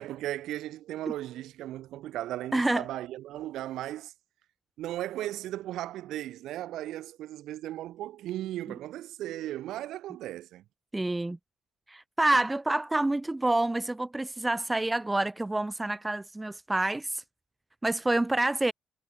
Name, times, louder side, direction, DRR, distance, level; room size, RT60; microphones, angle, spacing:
voice 1, 0.0-4.1 4.8-10.6, right 14 dB, 85° right, 4.7 m, -36 dB
voice 2, 2.5-2.9 10.9-11.4 11.9-17.2 17.8-18.7, right 2 dB, 15° right, 0.6 m, -27 dB
cardioid pair, 90°, 0 cm